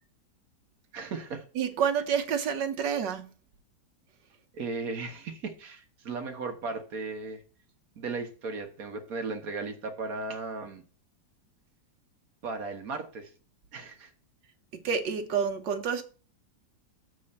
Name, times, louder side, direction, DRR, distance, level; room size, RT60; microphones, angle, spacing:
voice 1, 0.9-1.4 4.5-7.4 8.0-10.8 12.4-13.3 13.7-14.1, right 3 dB, 55° right, 1.4 m, -36 dB
voice 2, 1.5-3.3 14.7-16.0, right 7 dB, 75° right, 1.5 m, -28 dB
6.9 x 4.2 x 6.5 m
omnidirectional pair, 2.0 m